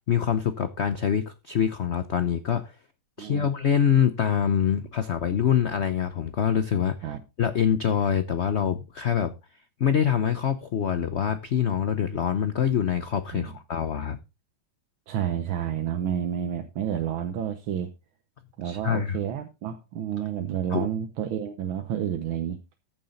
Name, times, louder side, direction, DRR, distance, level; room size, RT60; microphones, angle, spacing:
voice 1, 0.1-2.7 3.2-7.0 7.4-9.3 9.8-14.2 18.6-19.2 20.7-20.9, left 8 dB, 85° left, 0.5 m, -25 dB
voice 2, 3.2-3.5 7.0-7.2 13.3-13.5 15.1-17.9 18.6-22.6, right 9 dB, 80° right, 1.8 m, -30 dB
14.5 x 7.3 x 3.9 m
omnidirectional pair, 2.2 m